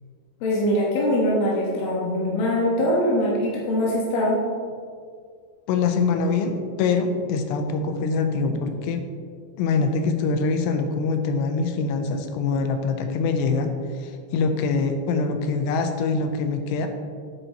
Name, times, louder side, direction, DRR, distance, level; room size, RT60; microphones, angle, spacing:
voice 1, 0.4-4.4, left 1 dB, 65° left, -5 dB, 2.9 m, -22 dB
voice 2, 5.7-9.1 9.6-13.7 14.0-16.9, left 4 dB, 85° left, 6 dB, 2.8 m, -24 dB
9.9 x 8.7 x 3.0 m, 2.1 s
omnidirectional pair, 4.9 m